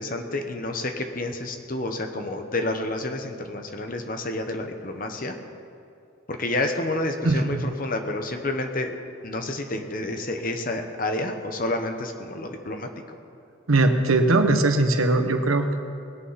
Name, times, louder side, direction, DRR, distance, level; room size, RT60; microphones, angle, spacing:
voice 1, 0.0-5.3 6.3-8.9 9.2-13.2, left 2 dB, 40° left, 5 dB, 1.1 m, -29 dB
voice 2, 7.2-7.6 13.7-15.8, right 2 dB, 90° right, 6 dB, 1.2 m, -20 dB
20.5 x 8.5 x 5.8 m, 2.6 s
head